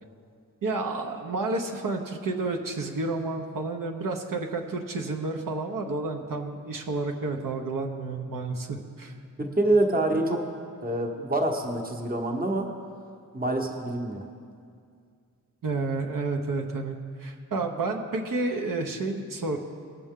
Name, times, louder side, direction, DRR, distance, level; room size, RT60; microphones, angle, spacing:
voice 1, 0.6-9.1 15.6-19.6, right 3 dB, 70° right, 3 dB, 0.9 m, -30 dB
voice 2, 9.4-10.4 10.8-12.7 13.3-14.2, right 2 dB, 25° right, 2 dB, 1.0 m, -26 dB
19.5 x 6.8 x 3.7 m, 2.3 s
wide cardioid pair, 145°, 34 cm